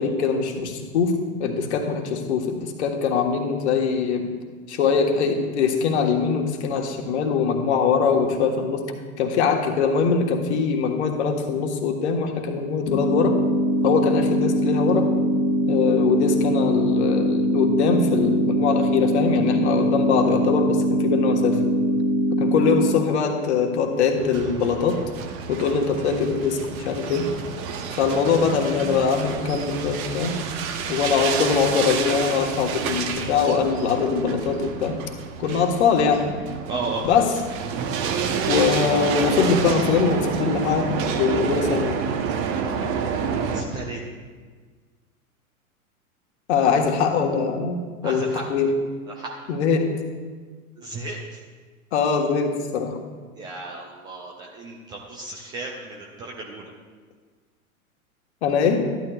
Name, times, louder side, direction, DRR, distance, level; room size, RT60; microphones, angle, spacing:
voice 1, 0.0-4.2 4.7-8.8 9.2-13.4 13.8-15.1 15.7-21.6 22.3-25.0 25.5-27.3 28.0-30.4 30.9-35.0 35.4-36.3 37.0-37.3 38.4-42.1 46.5-48.7 49.5-49.9 51.9-53.0 58.4-58.8, left 5 dB, 50° left, 4 dB, 1.4 m, -22 dB
sound 1, 12.9-22.9, equal, 75° left, 1.5 m, -22 dB
sound 2, 24.2-43.6, right 6 dB, 30° right, 0.9 m, -29 dB
voice 2, 36.7-37.2 38.6-38.7 43.5-44.0 48.0-48.5 49.1-49.3 50.8-51.4 53.3-56.7, right 3 dB, 10° right, -1 dB, 0.4 m, -34 dB
13.5 x 11.0 x 2.4 m, 1.5 s
figure-of-eight pair, 100°, 43 cm